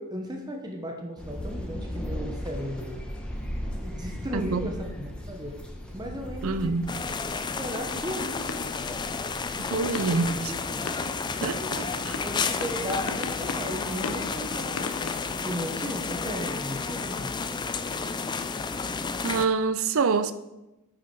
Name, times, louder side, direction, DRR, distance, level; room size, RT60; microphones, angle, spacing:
voice 1, 0.0-3.0 3.6-5.6 5.9-6.8 7.3-8.4 10.2-10.9 11.6-15.0 15.4-17.3, equal, 20° right, 0.9 m, -36 dB
sound 1, 1.2-10.2, equal, 5° left, 1.0 m, -37 dB
voice 2, 4.3-4.7 6.4-6.9 9.7-10.4 11.4-11.8 19.2-20.3, right 4 dB, 65° right, 0.5 m, -26 dB
sound 2, 6.9-19.5, left 4 dB, 20° left, 0.3 m, -31 dB
sound 3, 8.3-16.2, left 4 dB, 65° left, 0.6 m, -40 dB
9.4 x 4.8 x 4.7 m
head